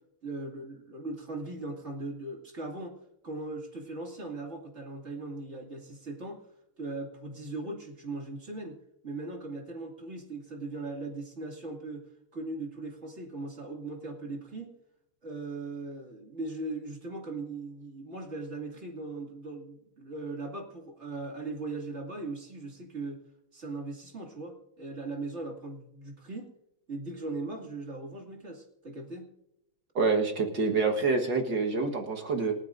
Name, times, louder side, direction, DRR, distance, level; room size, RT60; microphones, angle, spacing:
voice 1, 0.2-2.9 3.2-6.4 6.8-8.8 9.0-12.1 12.3-14.7 15.2-23.2 23.5-26.5 26.9-29.3, right 2 dB, 30° right, 0 dB, 2.5 m, -39 dB
voice 2, 30.0-32.5, right 4 dB, 60° right, 2 dB, 2.0 m, -27 dB
28.0 x 9.6 x 2.6 m, 0.83 s
omnidirectional pair, 2.3 m